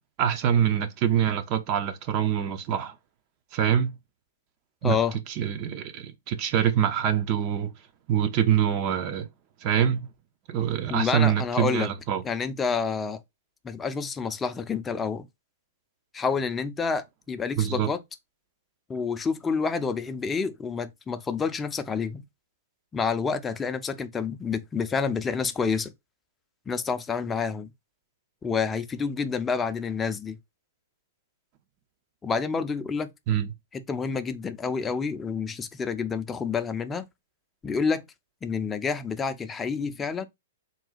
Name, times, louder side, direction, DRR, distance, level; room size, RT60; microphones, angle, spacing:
voice 1, 0.2-2.9 3.5-3.9 4.8-5.0 5.4-7.7 8.1-9.3 9.6-10.0 10.5-12.2 17.6-17.9 33.3-33.5, right 9 dB, 40° right, 0.6 m, -25 dB
voice 2, 4.8-5.2 10.9-11.9 12.2-13.2 13.6-15.3 16.1-18.0 18.9-22.2 22.9-25.9 26.7-27.7 28.4-30.4 32.2-33.1 33.7-37.1 37.6-38.0 38.4-40.3, left 5 dB, 15° left, 0.5 m, -28 dB
3.8 x 2.3 x 3.9 m
hypercardioid pair, 115°, 0 cm